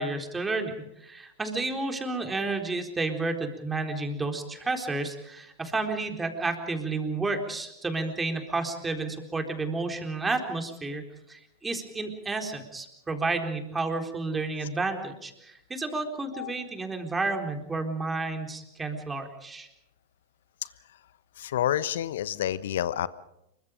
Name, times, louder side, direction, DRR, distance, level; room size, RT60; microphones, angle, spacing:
voice 1, 0.0-19.7, right 3 dB, 15° right, 4 dB, 4.0 m, -31 dB
voice 2, 21.4-23.1, left 11 dB, 65° left, 17 dB, 1.1 m, -28 dB
28.0 x 24.0 x 5.2 m, 0.84 s
figure-of-eight pair, 95°, 0 cm